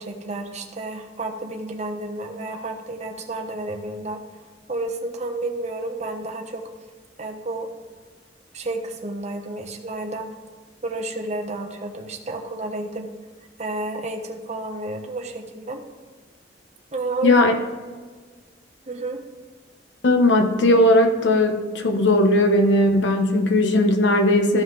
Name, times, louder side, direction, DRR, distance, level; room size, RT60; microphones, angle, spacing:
voice 1, 0.0-4.2 4.7-6.6 7.2-7.7 8.5-10.3 10.8-13.1 13.6-15.8 16.9-17.4 18.9-19.2, right 2 dB, 40° right, 2 dB, 1.0 m, -31 dB
voice 2, 17.2-17.5 20.0-24.6, left 1 dB, 85° left, 5 dB, 0.9 m, -18 dB
14.5 x 5.5 x 3.2 m, 1.4 s
head